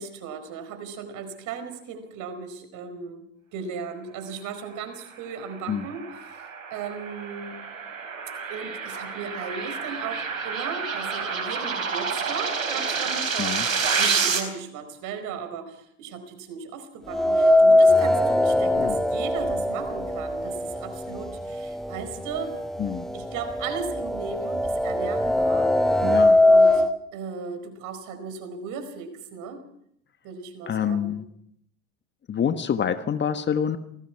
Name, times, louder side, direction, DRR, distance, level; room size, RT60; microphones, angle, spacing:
voice 1, 0.0-3.2 3.5-7.6 8.5-22.5 23.1-25.7 26.4-26.8 27.1-29.6 30.2-31.2, right 5 dB, 50° right, 9 dB, 4.7 m, -36 dB
sound 1, 5.5-14.4, right 5 dB, 80° right, 4.2 m, -29 dB
sound 2, 17.1-21.2 21.5-21.6 22.6-22.7 23.1-26.9, left 1 dB, ahead, 1.4 m, -20 dB
voice 2, 26.0-26.4 30.7-31.3 32.3-33.8, left 8 dB, 25° left, 10 dB, 1.4 m, -26 dB
28.5 x 19.5 x 4.7 m, 0.70 s
figure-of-eight pair, 75°, 39 cm